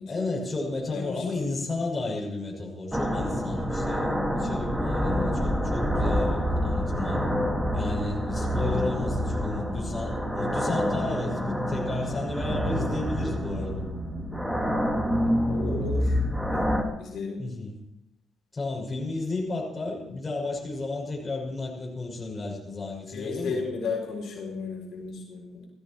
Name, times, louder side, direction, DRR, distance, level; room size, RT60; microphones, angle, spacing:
voice 1, 0.1-7.2 7.7-13.8 17.4-17.8 18.5-23.6, left 2 dB, 25° left, -2 dB, 6.2 m, -33 dB
voice 2, 0.9-1.7 5.6-5.7 11.3-11.5 15.5-16.1 16.5-17.4 23.1-25.7, left 4 dB, 70° left, -1 dB, 3.9 m, -34 dB
sound 1, 2.9-16.8, equal, 5° right, 2.1 m, -27 dB
17.0 x 15.0 x 4.6 m, 0.85 s
cardioid pair, 90°, 0 cm